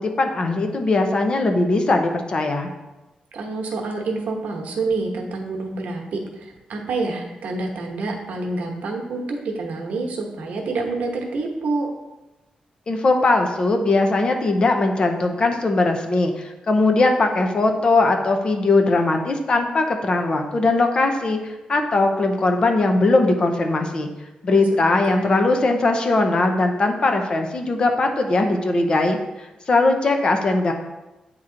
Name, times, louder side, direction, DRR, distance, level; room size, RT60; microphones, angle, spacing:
voice 1, 0.0-2.7 12.9-16.3 16.7-21.4 21.7-24.1 24.4-29.2 29.7-30.7, left 2 dB, 40° left, 5 dB, 0.6 m, -19 dB
voice 2, 3.3-11.9 24.5-25.5, right 3 dB, 80° right, 1 dB, 1.0 m, -28 dB
8.7 x 3.0 x 3.8 m, 1.0 s
wide cardioid pair, 145°, 2 cm